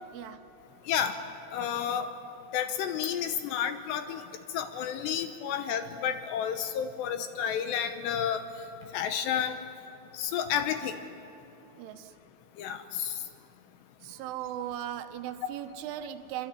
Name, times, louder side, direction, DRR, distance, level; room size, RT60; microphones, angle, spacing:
voice 1, 0.1-0.5 11.8-12.2 14.0-16.5, right 11 dB, 80° right, 9 dB, 3.4 m, -38 dB
voice 2, 0.9-1.2 1.5-2.1 2.5-4.2 4.5-8.4 8.9-9.6 10.1-11.0 12.6-13.2, left 8 dB, 75° left, 8 dB, 2.8 m, -31 dB
25.5 x 24.5 x 9.5 m, 2.9 s
omnidirectional pair, 5.6 m